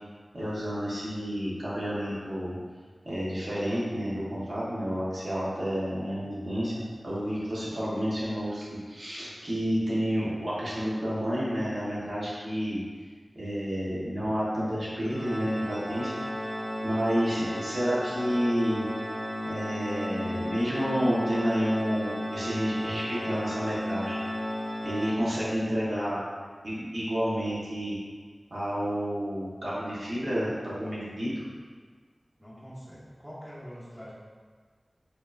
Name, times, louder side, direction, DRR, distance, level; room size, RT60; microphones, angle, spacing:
voice 1, 0.3-2.6 3.0-12.8 13.3-16.1 16.8-18.8 19.4-24.2 24.8-26.2 26.6-28.0 28.5-31.5, equal, 65° right, -9 dB, 1.3 m, -30 dB
Organ, 15.1-25.8, equal, 30° right, 0.5 m, -34 dB
voice 2, 31.1-31.5 32.4-34.1, equal, 5° right, -8 dB, 0.8 m, -45 dB
4.4 x 2.9 x 2.6 m, 1.5 s
wide cardioid pair, 75°, 0 cm